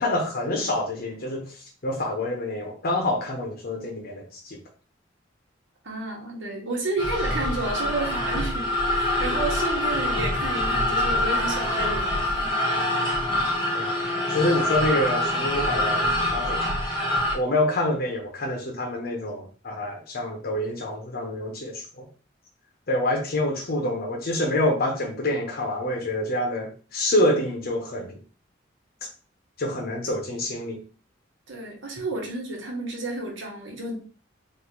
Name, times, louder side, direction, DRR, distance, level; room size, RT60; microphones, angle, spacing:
voice 1, 0.0-4.6 13.7-13.9 14.3-17.0 17.3-22.1 22.9-28.2 29.6-30.8, left 1 dB, 50° left, 0 dB, 0.7 m, -27 dB
voice 2, 5.8-12.6 31.5-34.0, right 2 dB, 70° right, -1 dB, 1.3 m, -31 dB
sound 1, 7.0-17.4, left 1 dB, 25° left, 0.9 m, -25 dB
3.0 x 2.5 x 3.7 m, 0.38 s
head